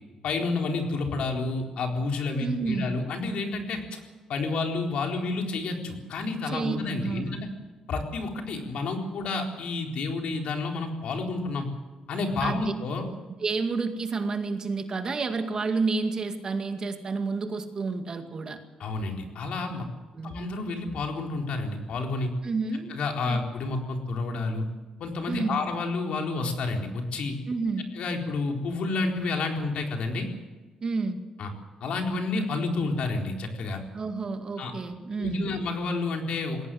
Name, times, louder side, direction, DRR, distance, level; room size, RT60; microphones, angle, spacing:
voice 1, 0.2-4.0 4.3-7.5 7.9-11.7 12.1-13.1 18.8-19.9 20.2-22.3 22.9-24.6 25.0-27.4 27.9-30.3 31.4-31.5 31.8-33.8 34.6-34.7 35.2-36.7, left 3 dB, 70° left, 2 dB, 4.1 m, -30 dB
voice 2, 2.4-2.9 6.5-7.4 12.4-12.7 13.1-13.2 13.4-18.6 20.1-20.3 22.4-22.9 23.3-23.4 25.3-25.6 27.5-27.9 30.8-31.2 33.9-35.5, right 4 dB, 35° right, 6 dB, 2.1 m, -30 dB
20.5 x 17.5 x 7.8 m, 1.3 s
cardioid pair, 135°, 2 cm